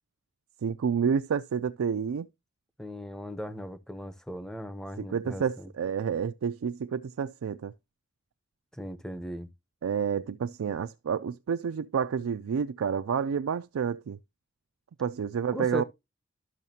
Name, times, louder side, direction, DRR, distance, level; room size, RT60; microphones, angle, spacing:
voice 1, 0.6-2.3 5.0-7.7 9.8-14.2 15.0-15.8, right 7 dB, 85° right, 0.4 m, -29 dB
voice 2, 2.8-5.7 8.7-9.5 15.5-15.8, equal, 5° left, 0.6 m, -38 dB
12.5 x 6.4 x 2.8 m
head